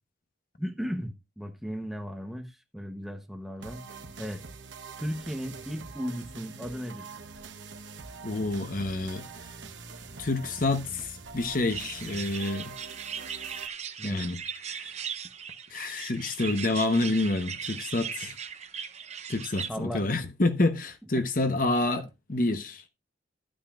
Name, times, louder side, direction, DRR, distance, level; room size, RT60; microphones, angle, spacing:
voice 1, 0.6-3.8 4.2-4.4 5.0-7.1 14.0-14.2 19.7-20.0 21.1-21.2 21.9-22.1, equal, ahead, 0.9 m, -36 dB
sound 1, 3.6-13.7, right 4 dB, 70° right, 1.1 m, -44 dB
voice 2, 8.2-9.3 10.2-12.8 14.0-14.4 14.7-15.0 15.7-18.3 19.3-22.9, left 2 dB, 45° left, 1.0 m, -28 dB
sound 2, 11.7-19.7, right 7 dB, 35° right, 0.7 m, -38 dB
12.0 x 8.8 x 2.5 m
head